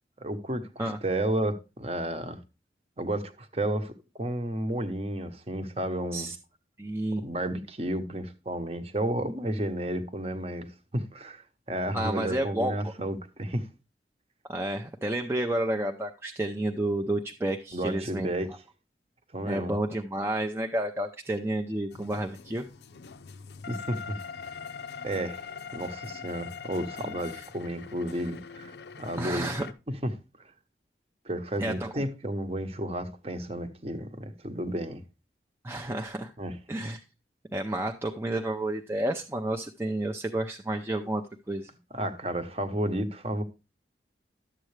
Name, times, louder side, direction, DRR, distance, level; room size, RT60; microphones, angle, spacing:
voice 1, 0.2-2.4 3.0-6.3 7.2-13.7 17.7-18.5 19.3-19.7 23.7-24.2 25.0-25.4 25.7-29.5 29.9-30.1 31.2-35.0 36.4-36.6 41.9-43.4, right 1 dB, 35° right, 0.9 m, -32 dB
voice 2, 6.8-7.2 11.9-12.9 14.5-18.3 19.5-22.7 29.2-29.7 31.6-32.0 35.6-36.3 36.7-37.0 37.5-41.7, right 1 dB, 15° right, 0.5 m, -30 dB
sound 1, 21.9-29.7, left 6 dB, 75° left, 0.6 m, -42 dB
11.5 x 7.6 x 3.2 m
head